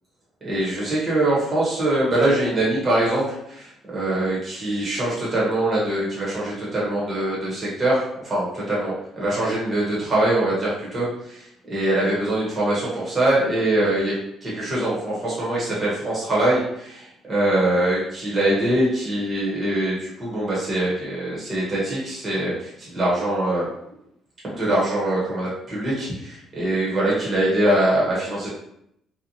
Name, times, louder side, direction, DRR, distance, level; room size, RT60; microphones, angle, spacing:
voice 1, 0.4-23.7 24.5-28.5, right 1 dB, 30° right, -7 dB, 0.9 m, -23 dB
2.7 x 2.1 x 2.6 m, 0.76 s
cardioid pair, 120°, 0 cm